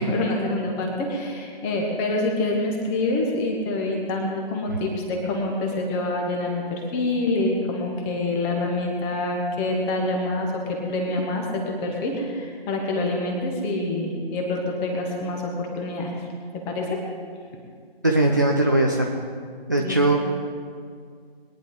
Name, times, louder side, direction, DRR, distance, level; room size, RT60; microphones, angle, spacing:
voice 1, 0.0-16.1 16.6-17.0 19.8-20.2, left 2 dB, 10° left, 1 dB, 1.0 m, -26 dB
voice 2, 18.0-19.1 19.7-20.2, right 2 dB, 20° right, 0 dB, 0.4 m, -19 dB
21.0 x 9.9 x 3.7 m, 2.1 s
figure-of-eight pair, 145°, 30 cm